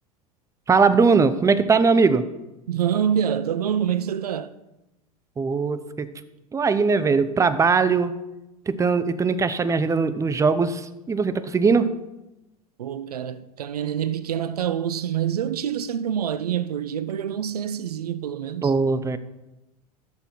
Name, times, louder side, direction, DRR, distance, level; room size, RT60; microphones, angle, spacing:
voice 1, 0.7-2.2 5.4-6.1 6.5-8.1 8.7-11.9 18.6-19.2, right 4 dB, 15° right, 0.7 m, -20 dB
voice 2, 2.7-4.5 12.8-18.7, right 9 dB, 85° right, 0.5 m, -26 dB
13.0 x 6.8 x 4.5 m
hypercardioid pair, 85°, 19 cm